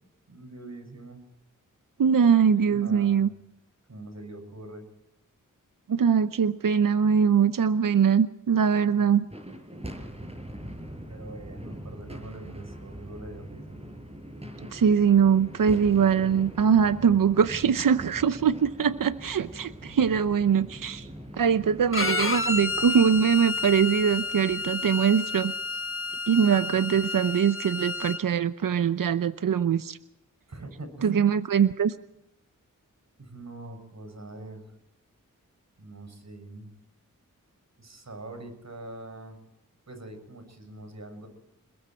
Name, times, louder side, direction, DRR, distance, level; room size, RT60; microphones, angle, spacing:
voice 1, 0.3-1.3 2.5-3.2 3.9-4.8 11.1-13.8 30.5-31.2 33.2-34.7 35.8-36.7 37.8-39.4 39.9-41.3, right 2 dB, 55° right, 8 dB, 7.0 m, -43 dB
voice 2, 2.0-3.3 5.9-9.3 14.7-21.1 21.3-25.5 26.3-30.0 31.0-31.9, right 7 dB, 80° right, 11 dB, 0.9 m, -22 dB
sound 1, 9.2-25.6, equal, 20° right, 6.5 m, -43 dB
Bowed string instrument, 21.9-28.2, left 4 dB, 40° left, 1.5 m, -31 dB
28.5 x 21.0 x 4.5 m, 0.87 s
cardioid pair, 50°, 33 cm